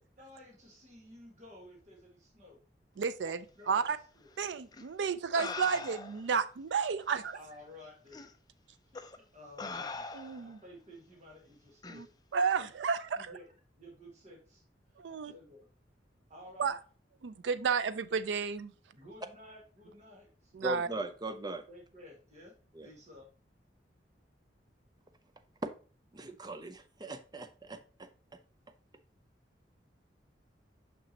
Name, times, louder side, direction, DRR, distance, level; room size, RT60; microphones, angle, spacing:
voice 1, 0.2-2.6 3.2-3.9 4.2-4.3 7.3-8.3 8.8-12.4 13.2-13.5 13.8-14.6 14.9-15.6 16.3-16.7 19.0-20.5 21.7-22.5 22.8-23.2, left 1 dB, 40° right, -2 dB, 1.7 m, -53 dB
voice 2, 3.0-3.4 3.7-4.0 4.4-7.4 10.1-10.6 11.9-12.1 12.3-13.4 15.0-15.3 16.6-16.8 17.2-18.7 20.5-20.9, right 6 dB, 85° right, 13 dB, 0.4 m, -32 dB
sound 1, 4.7-4.8 5.4-6.3 7.2-7.3 8.1-8.3 8.9-9.2 9.6-10.5 11.8-12.0, left 4 dB, 20° left, 0.4 m, -41 dB
voice 3, 20.6-21.6 22.7-22.9 25.6-25.7 26.1-28.1, right 2 dB, 25° right, 9 dB, 0.6 m, -39 dB
6.0 x 5.9 x 2.8 m, 0.39 s
head